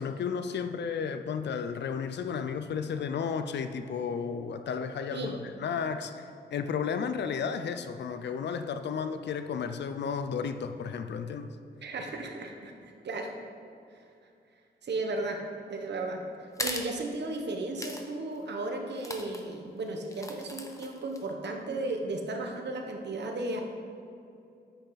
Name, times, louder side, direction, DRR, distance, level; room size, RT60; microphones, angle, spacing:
voice 1, 0.0-11.5, left 6 dB, 80° left, 9 dB, 0.5 m, -33 dB
voice 2, 11.8-12.7 13.0-13.3 14.8-15.4 15.7-16.2 16.6-23.6, right 2 dB, 75° right, 3 dB, 1.2 m, -34 dB
sound 1, 16.5-16.9 17.8-18.0 18.3-18.4 19.0-19.4 20.0-21.2, left 1 dB, 20° left, 1.0 m, -37 dB
10.0 x 7.8 x 4.0 m, 2.6 s
wide cardioid pair, 90°, 18 cm